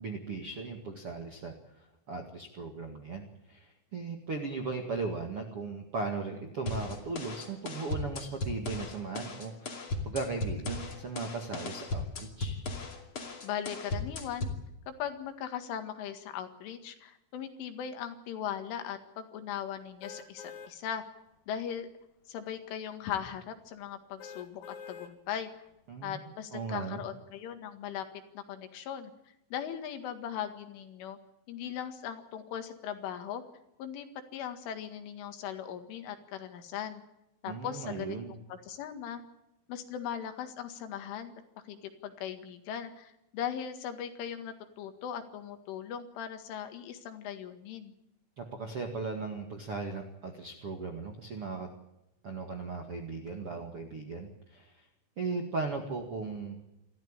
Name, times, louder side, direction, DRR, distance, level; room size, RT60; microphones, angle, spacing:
voice 1, 0.0-12.6 25.9-26.2 26.5-27.0 37.4-38.3 48.4-51.7 52.2-54.9 55.2-56.6, right 4 dB, 55° right, 3 dB, 1.6 m, -37 dB
sound 1, 6.7-14.6, left 3 dB, 35° left, 2.4 m, -37 dB
voice 2, 13.4-14.5 14.9-21.0 21.5-21.9 22.3-25.5 26.0-28.1 28.4-29.1 29.5-31.2 31.5-33.4 33.8-34.1 34.3-37.0 37.4-39.2 39.7-41.3 41.7-47.9, left 9 dB, 75° left, 8 dB, 4.3 m, -39 dB
sound 2, 20.0-20.7 21.3-21.4 24.2-25.1 25.7-25.8, left 6 dB, 90° left, 5.0 m, -46 dB
27.5 x 13.5 x 8.8 m, 0.88 s
omnidirectional pair, 5.8 m